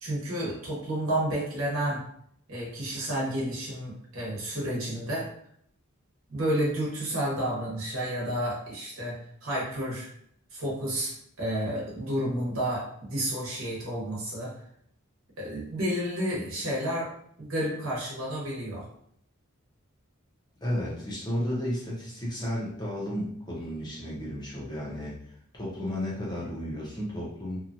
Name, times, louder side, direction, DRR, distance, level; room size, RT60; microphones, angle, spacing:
voice 1, 0.0-2.0 2.5-5.3 6.3-10.1 10.5-14.5 15.4-17.1 17.4-18.9, right 1 dB, 75° right, -5 dB, 1.1 m, -31 dB
voice 2, 20.6-25.2 25.5-27.6, equal, 20° left, -5 dB, 0.8 m, -33 dB
2.8 x 2.4 x 2.5 m, 0.67 s
head